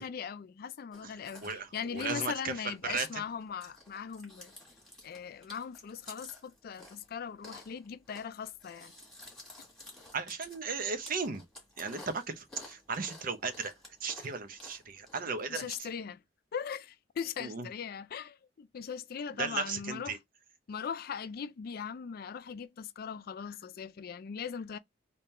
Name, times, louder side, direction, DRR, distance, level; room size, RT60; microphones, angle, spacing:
voice 1, 0.0-4.5 5.0-8.9 15.5-16.2 16.5-20.2 20.7-24.8, left 7 dB, 55° left, 0.4 m, -39 dB
Chewing mastication, 0.9-15.8, left 1 dB, ahead, 1.9 m, -53 dB
voice 2, 1.4-3.2 10.1-11.4 11.8-13.7 14.0-15.7 17.4-17.7 19.4-20.2, right 5 dB, 50° right, 0.7 m, -36 dB
3.6 x 2.8 x 3.2 m
head